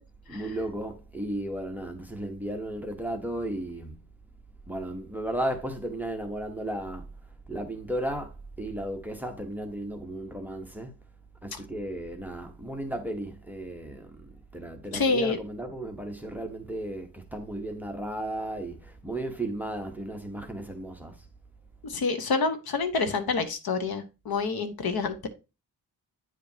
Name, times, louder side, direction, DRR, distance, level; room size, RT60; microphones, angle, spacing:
voice 1, 0.3-4.1 4.7-7.0 7.5-10.9 11.4-14.3 14.5-21.2, right 1 dB, 5° right, 0.8 m, -34 dB
voice 2, 14.9-15.4 21.8-25.3, left 4 dB, 65° left, 1.0 m, -27 dB
9.2 x 4.9 x 2.7 m
wide cardioid pair, 160°, 39 cm